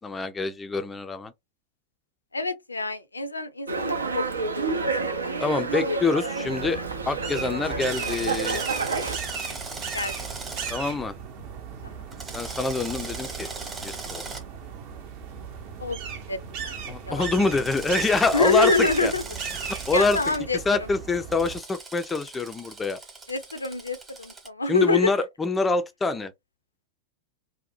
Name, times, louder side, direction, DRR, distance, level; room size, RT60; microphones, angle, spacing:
voice 1, 0.0-1.3 5.4-6.8 7.1-8.6 10.7-11.1 12.3-13.5 13.8-14.2 16.9-19.1 19.7-20.3 20.7-23.0 24.7-26.3, left 3 dB, 15° left, 0.3 m, -26 dB
voice 2, 2.3-4.8 5.8-6.0 9.9-10.1 11.8-12.0 15.8-16.8 17.1-17.3 18.3-19.2 19.9-20.9 23.3-25.1, left 3 dB, 80° left, 0.4 m, -26 dB
Dog, 3.7-9.2, right 4 dB, 75° right, 0.5 m, -29 dB
sound 1, 6.5-21.6, right 7 dB, 45° right, 0.7 m, -36 dB
Drill, 7.9-10.7 12.1-14.4 17.6-20.4 21.3-24.5, right 3 dB, 15° right, 0.9 m, -38 dB
2.6 x 2.0 x 2.5 m
figure-of-eight pair, 90°, 0 cm